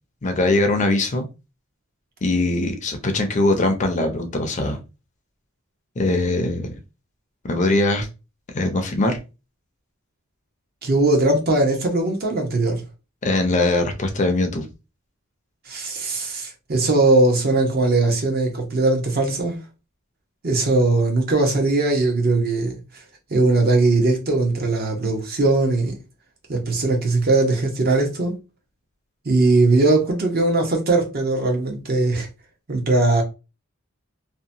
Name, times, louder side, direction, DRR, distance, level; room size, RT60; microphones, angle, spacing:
voice 1, 0.2-1.2 2.2-4.8 6.0-6.8 7.4-8.1 8.5-9.2 13.2-14.6, left 2 dB, 35° left, 0.5 m, -21 dB
voice 2, 10.8-12.8 15.7-19.6 20.4-22.8 23.3-26.0 26.5-28.3 29.2-32.3 32.7-33.2, right 2 dB, 45° right, 0.8 m, -20 dB
2.8 x 2.1 x 2.6 m
head